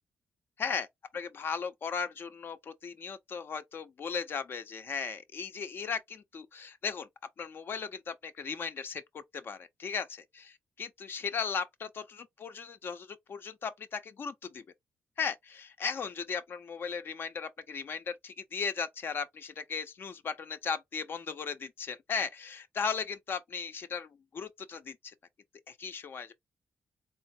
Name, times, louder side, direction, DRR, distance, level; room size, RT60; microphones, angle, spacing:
voice 1, 1.1-7.1 7.4-14.6 15.2-25.1 25.7-26.3, left 6 dB, 60° left, 0.9 m, -37 dB
3.9 x 3.3 x 2.8 m
cardioid pair, 75°, 4 cm